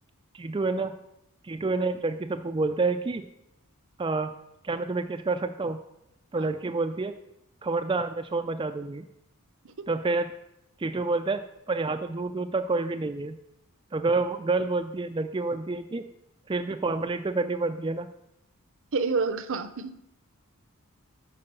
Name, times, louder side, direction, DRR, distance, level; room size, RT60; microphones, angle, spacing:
voice 1, 0.3-0.9 1.4-3.3 4.0-4.3 4.6-5.8 6.3-7.1 7.6-9.1 9.9-10.3 10.8-13.4 13.9-16.1 16.5-18.1, right 3 dB, 20° right, 7 dB, 0.4 m, -28 dB
voice 2, 18.9-20.0, right 4 dB, 60° right, 11 dB, 0.7 m, -29 dB
10.5 x 4.8 x 6.9 m, 0.84 s
head